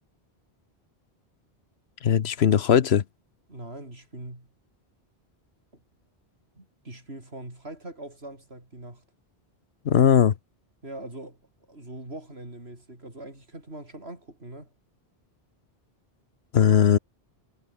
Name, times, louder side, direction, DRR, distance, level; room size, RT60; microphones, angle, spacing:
voice 1, 2.0-3.0 9.8-10.3 16.5-17.0, left 8 dB, 80° left, 1.2 m, -19 dB
voice 2, 3.5-4.5 6.6-9.0 10.8-11.4 11.7-14.7, right 1 dB, 80° right, 6.3 m, -42 dB
omnidirectional pair, 1.0 m